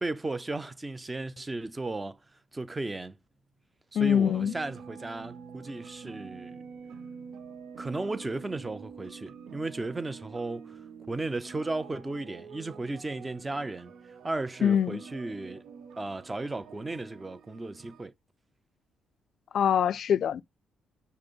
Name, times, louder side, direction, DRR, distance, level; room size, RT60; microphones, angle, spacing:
voice 1, 0.0-2.2 2.5-3.2 3.9-6.6 7.8-10.8 11.1-13.9 14.2-15.6 16.0-18.1, right 2 dB, 20° right, 0.5 m, -35 dB
voice 2, 4.0-4.5 14.6-15.0 19.5-20.4, left 8 dB, 65° left, 0.3 m, -24 dB
sound 1, 4.3-18.1, right 6 dB, 80° right, 0.6 m, -47 dB
5.0 x 2.0 x 4.5 m
cardioid pair, 90°, 0 cm